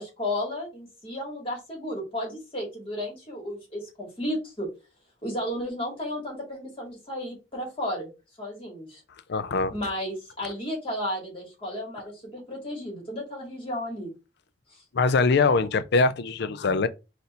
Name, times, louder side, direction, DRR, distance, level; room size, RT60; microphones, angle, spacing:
voice 1, 0.0-4.7 5.2-8.1 8.4-9.0 9.7-14.1 14.7-14.8, left 1 dB, 30° left, 2.2 m, -33 dB
voice 2, 9.3-9.7 14.9-16.9, left 4 dB, 65° left, 0.5 m, -22 dB
4.3 x 2.6 x 4.0 m
head